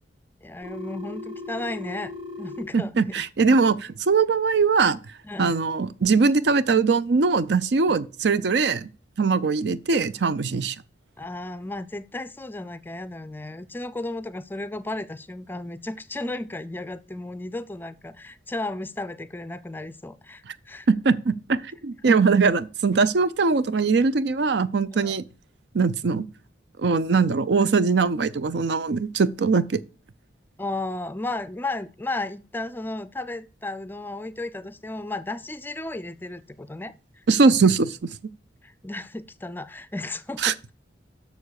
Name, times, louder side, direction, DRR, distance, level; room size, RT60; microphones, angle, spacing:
voice 1, 0.4-2.1 2.4-3.2 5.2-5.6 7.8-8.0 11.2-20.9 22.1-22.2 24.9-25.2 30.6-36.9 38.6-40.6, left 2 dB, 10° left, 0.4 m, -34 dB
Telephone, 0.6-2.6, left 2 dB, 30° right, 2.2 m, -37 dB
voice 2, 2.7-5.0 5.4-8.9 9.2-10.8 20.9-25.2 25.7-26.3 26.8-29.8 37.3-38.0 40.4-40.5, right 4 dB, 65° right, 0.5 m, -21 dB
7.1 x 6.5 x 6.4 m
head